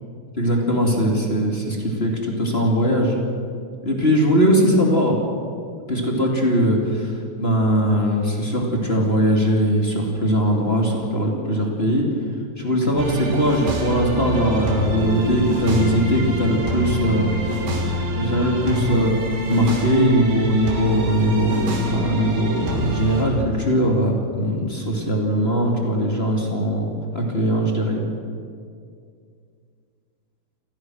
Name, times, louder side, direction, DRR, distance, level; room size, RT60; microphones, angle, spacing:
voice 1, 0.4-3.2 3.8-5.2 5.9-12.0 12.6-17.3 17.8-19.1 19.5-28.0, equal, 20° left, 0 dB, 1.7 m, -20 dB
sound 1, 13.0-23.2, right 1 dB, 80° right, 5.4 m, -26 dB
29.0 x 15.5 x 6.4 m, 2.3 s
omnidirectional pair, 5.1 m